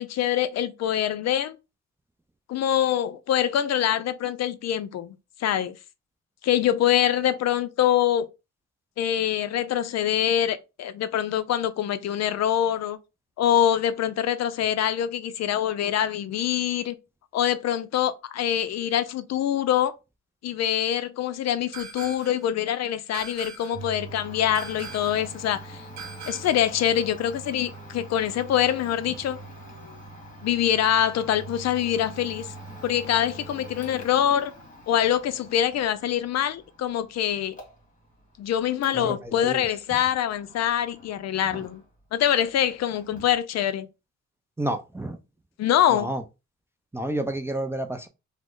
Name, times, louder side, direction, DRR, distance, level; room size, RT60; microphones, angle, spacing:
voice 1, 0.0-1.6 2.5-5.1 5.4-5.7 6.4-8.3 9.0-13.0 13.4-17.0 17.3-19.9 20.4-25.8 26.3-29.4 30.4-32.5 32.8-34.5 34.9-37.6 38.4-41.8 42.1-43.9 45.6-46.1, left 10 dB, 60° left, 0.4 m, -24 dB
sound 1, 21.7-22.5 23.1-23.9 24.5-25.3 26.0-26.7, right 6 dB, 75° right, 0.8 m, -41 dB
Domestic sounds home sounds, 23.7-42.1 42.3-43.4, right 1 dB, 25° left, 1.6 m, -44 dB
voice 2, 38.9-39.6 44.6-45.2 45.9-46.2 46.9-48.1, right 1 dB, 10° right, 0.4 m, -30 dB
3.0 x 2.1 x 3.6 m
cardioid pair, 90°, 30 cm